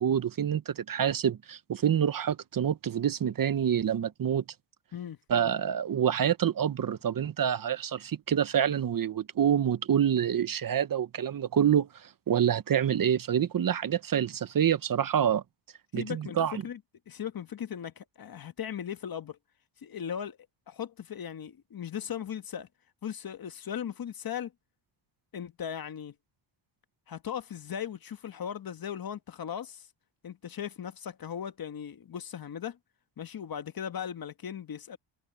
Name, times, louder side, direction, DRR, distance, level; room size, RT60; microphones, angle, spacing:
voice 1, 0.0-4.4 5.3-15.4 15.9-16.6, right 9 dB, 45° right, 1.0 m, -27 dB
voice 2, 15.9-16.8 17.1-19.4 19.8-20.4 20.7-22.7 23.0-24.5 25.3-26.1 27.1-29.9 30.2-32.8 33.2-35.0, left 8 dB, 50° left, 1.5 m, -38 dB
cardioid pair, 90°, 46 cm